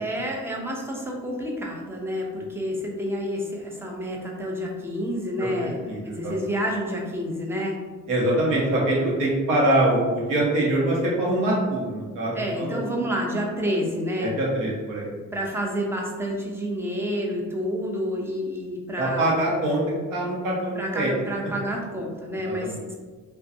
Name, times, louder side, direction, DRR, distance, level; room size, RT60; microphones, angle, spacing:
voice 1, 0.0-7.8 12.3-14.3 15.3-19.3 20.8-22.9, equal, 10° right, -1 dB, 0.3 m, -29 dB
voice 2, 5.4-6.3 8.1-12.9 14.2-15.1 19.0-19.8 20.1-21.1 22.4-22.8, right 1 dB, 85° right, -4 dB, 0.9 m, -24 dB
2.5 x 2.2 x 2.5 m, 1.4 s
cardioid pair, 130°, 31 cm